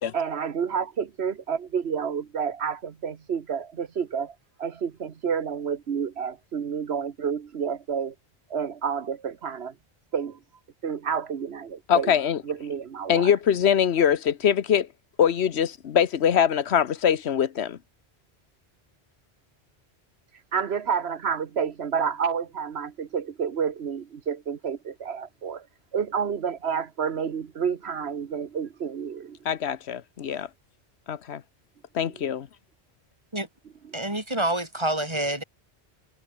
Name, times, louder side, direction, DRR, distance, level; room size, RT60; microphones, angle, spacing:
voice 1, 0.1-8.1 8.5-9.7 10.1-10.4 10.8-12.1 12.4-13.3 20.5-25.7 25.9-29.4, right 7 dB, 75° right, 1.3 m, -29 dB
voice 2, 11.9-12.4 13.1-14.9 15.2-17.8 29.4-30.5 31.1-31.4 31.9-32.5, left 8 dB, 80° left, 1.2 m, -23 dB
voice 3, 33.9-35.4, right 1 dB, 25° right, 3.6 m, -27 dB
omnidirectional pair, 1.1 m